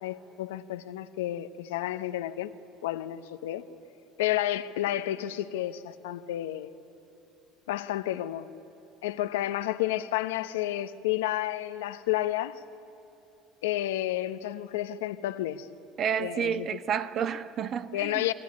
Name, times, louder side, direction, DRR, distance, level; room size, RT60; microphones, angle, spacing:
voice 1, 0.0-2.5 2.8-3.6 4.2-6.7 7.7-8.5 9.0-12.6 13.6-15.7 16.2-16.8 17.9-18.3, left 14 dB, 90° left, 1.0 m, -31 dB
voice 2, 16.0-18.2, right 8 dB, 50° right, 1.2 m, -30 dB
28.5 x 21.5 x 9.6 m
supercardioid pair, 85°, 0 cm